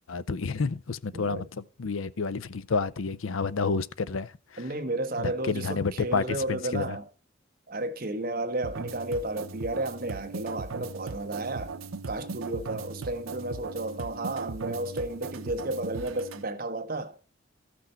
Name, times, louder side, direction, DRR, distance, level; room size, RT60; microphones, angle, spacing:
voice 1, 0.1-4.6 5.2-7.0, left 4 dB, 85° left, 0.6 m, -30 dB
voice 2, 1.1-1.4 4.6-7.1 7.7-11.7 12.1-17.2, right 2 dB, 45° right, 1.2 m, -32 dB
sound 1, 8.6-16.4, right 4 dB, 90° right, 0.7 m, -38 dB
14.0 x 6.1 x 4.4 m
head